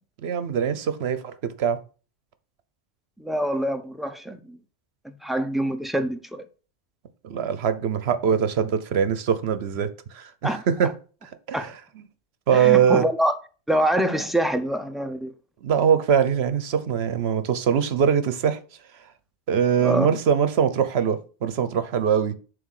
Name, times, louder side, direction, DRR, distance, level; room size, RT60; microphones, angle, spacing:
voice 1, 0.2-1.8 7.2-10.9 11.5-11.7 12.5-13.1 15.6-18.6 19.5-22.3, right 8 dB, 70° right, 1.0 m, -22 dB
voice 2, 3.2-4.6 5.2-6.4 10.4-10.9 11.5-11.7 12.5-13.3 13.7-15.3 19.8-20.1, right 1 dB, ahead, 0.3 m, -25 dB
7.6 x 3.3 x 6.3 m
omnidirectional pair, 1.1 m